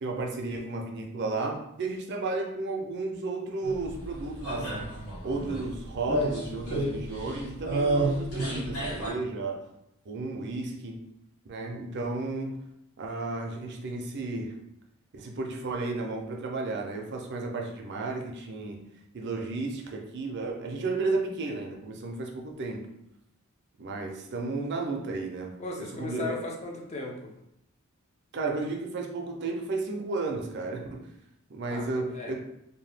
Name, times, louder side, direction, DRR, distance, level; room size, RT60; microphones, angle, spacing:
voice 1, 0.0-4.9 5.2-9.7 10.1-11.0 11.5-12.6 13.0-14.6 15.1-18.8 19.1-22.9 23.8-26.3 28.3-31.1 31.5-32.4, right 3 dB, 50° right, 1 dB, 0.4 m, -33 dB
sound 1, 3.6-9.1, right 1 dB, 90° left, 1.2 m, -31 dB
voice 2, 25.6-27.3 31.7-32.3, left 2 dB, 30° left, 0 dB, 0.4 m, -37 dB
2.7 x 2.2 x 3.3 m, 0.82 s
head